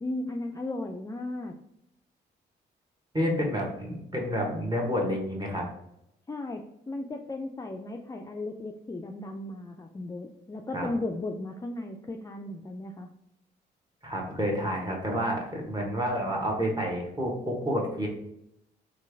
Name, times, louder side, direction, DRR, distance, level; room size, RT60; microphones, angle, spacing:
voice 1, 0.0-1.5 6.3-6.6 6.9-13.1, left 2 dB, 15° left, 3 dB, 0.3 m, -35 dB
voice 2, 3.1-5.7 10.7-10.9 14.0-18.1, equal, 20° right, -1 dB, 1.2 m, -29 dB
3.0 x 2.4 x 3.4 m, 0.79 s
supercardioid pair, 55°, 21 cm